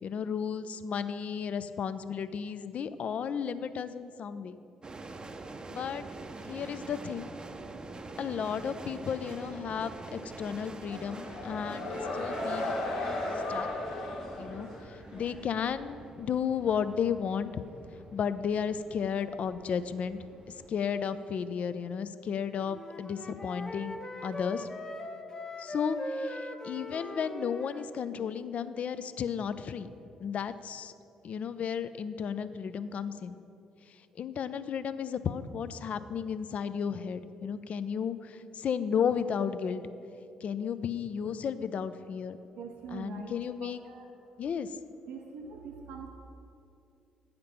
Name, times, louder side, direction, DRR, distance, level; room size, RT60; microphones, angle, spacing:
voice 1, 0.0-4.6 5.7-6.1 6.5-7.3 8.2-11.9 12.1-12.7 13.5-13.7 14.4-17.6 18.1-20.2 20.7-24.7 25.6-29.9 30.2-30.9 31.2-33.4 34.2-39.8 40.4-42.4 42.9-43.8 44.4-44.7, left 7 dB, 55° left, 13 dB, 0.4 m, -33 dB
sound 1, 4.8-20.7, right 3 dB, 30° right, 0.6 m, -46 dB
sound 2, 10.8-15.3, left 2 dB, 85° left, 1.5 m, -35 dB
Wind instrument woodwind instrument, 22.7-27.9, left 1 dB, 25° left, 0.8 m, -40 dB
voice 2, 42.5-43.3 43.6-44.1 45.1-46.1, right 5 dB, 70° right, 2 dB, 0.6 m, -43 dB
9.3 x 5.1 x 5.8 m, 2.7 s
hypercardioid pair, 50°, 3 cm